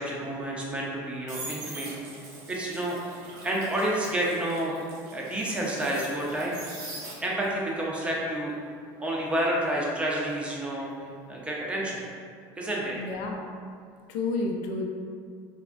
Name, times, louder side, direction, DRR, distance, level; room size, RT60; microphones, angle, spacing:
voice 1, 0.0-1.9 2.5-3.0 3.2-4.7 5.1-6.6 7.2-8.5 9.0-10.9 11.3-12.0 12.6-13.0, right 1 dB, 10° right, -4 dB, 0.4 m, -29 dB
sound 1, 0.9-7.6 7.9-10.8 11.1-11.4, right 2 dB, 75° right, 0.8 m, -43 dB
voice 2, 12.9-13.4 14.1-14.8, left 3 dB, 75° left, 1 dB, 0.4 m, -30 dB
3.4 x 2.0 x 2.4 m, 2.2 s
cardioid pair, 140°, 11 cm